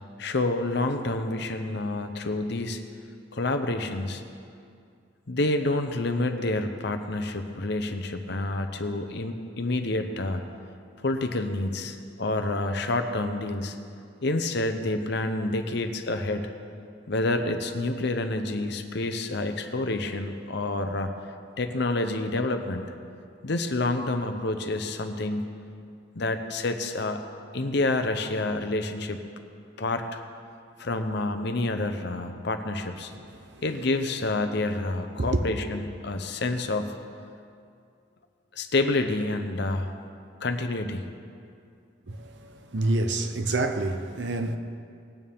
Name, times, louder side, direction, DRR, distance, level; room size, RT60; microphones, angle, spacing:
voice 1, 0.2-2.8 3.3-4.2 5.3-10.4 11.0-13.8 14.2-16.5 17.1-21.1 21.6-22.9 23.4-25.5 26.1-27.2 27.5-29.2 29.8-30.2 30.8-33.1 33.6-36.9 38.6-39.9 40.4-41.0, left 2 dB, 60° left, 0.8 m, -28 dB
voice 2, 33.1-33.6 35.2-35.5 42.1-44.6, right 2 dB, 60° right, 0.8 m, -28 dB
19.0 x 9.1 x 3.6 m
head